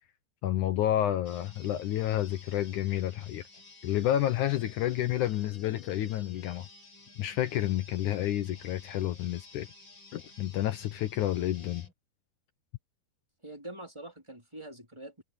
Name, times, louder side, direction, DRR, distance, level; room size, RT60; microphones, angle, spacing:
voice 1, 0.4-3.4 3.8-6.7 7.2-9.7 10.1-11.9, left 12 dB, 70° left, 2.0 m, -30 dB
sound 1, 1.3-11.9, left 3 dB, 30° left, 6.1 m, -53 dB
voice 2, 13.4-15.2, right 1 dB, 10° right, 3.3 m, -44 dB
omnidirectional pair, 4.3 m